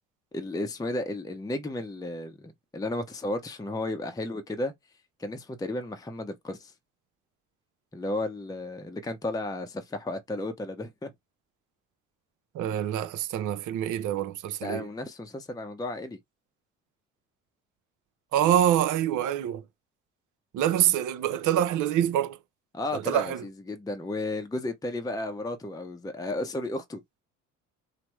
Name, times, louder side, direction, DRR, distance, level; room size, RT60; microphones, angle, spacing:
voice 1, 0.3-4.7 5.2-6.7 7.9-11.1 14.6-16.2 22.7-27.0, left 2 dB, 10° left, 0.7 m, -33 dB
voice 2, 12.5-14.9 18.3-19.6 20.5-22.4 22.9-23.4, right 11 dB, 60° right, 0.6 m, -26 dB
3.3 x 2.0 x 3.0 m
hypercardioid pair, 65°, 35 cm